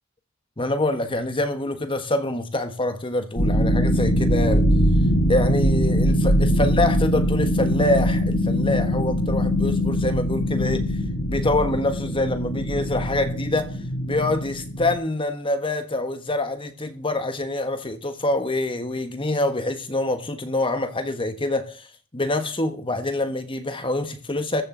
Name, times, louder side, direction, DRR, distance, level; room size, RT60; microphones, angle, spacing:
voice 1, 0.6-4.7 5.3-11.0 11.3-13.7 14.1-21.9 22.1-24.6, left 2 dB, 25° left, 1.3 m, -25 dB
sound 1, 3.3-14.9, equal, 70° left, 7.3 m, -22 dB
14.5 x 6.6 x 7.9 m
head